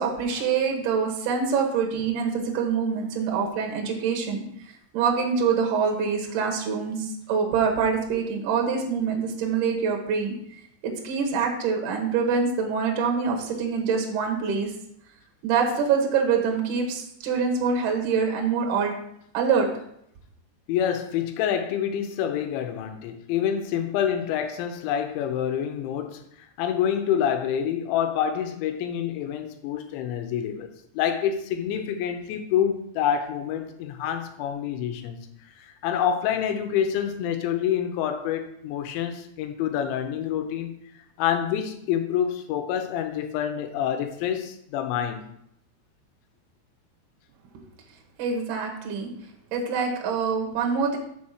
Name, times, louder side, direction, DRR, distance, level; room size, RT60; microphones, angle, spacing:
voice 1, 0.0-4.4 4.9-10.3 10.8-14.7 15.4-19.0 19.3-19.7 48.2-49.1 49.5-51.0, right 5 dB, 75° right, 1 dB, 1.8 m, -25 dB
voice 2, 20.7-26.2 26.6-30.7 30.9-35.2 35.8-40.7 41.2-45.3, left 9 dB, 85° left, 7 dB, 3.1 m, -27 dB
7.0 x 4.2 x 6.4 m, 0.72 s
omnidirectional pair, 5.2 m